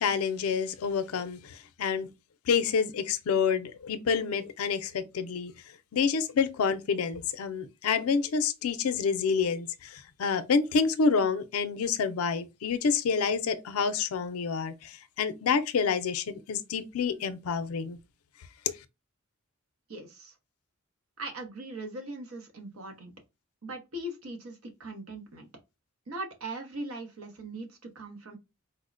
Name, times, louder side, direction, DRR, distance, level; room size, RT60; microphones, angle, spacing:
voice 1, 0.0-2.1 2.5-5.5 5.9-18.0 18.7-18.8, left 5 dB, 90° left, 0.4 m, -28 dB
voice 2, 19.9-20.4 21.2-23.1 23.6-25.5 26.1-28.4, right 2 dB, 90° right, 0.9 m, -40 dB
4.3 x 2.1 x 2.5 m
head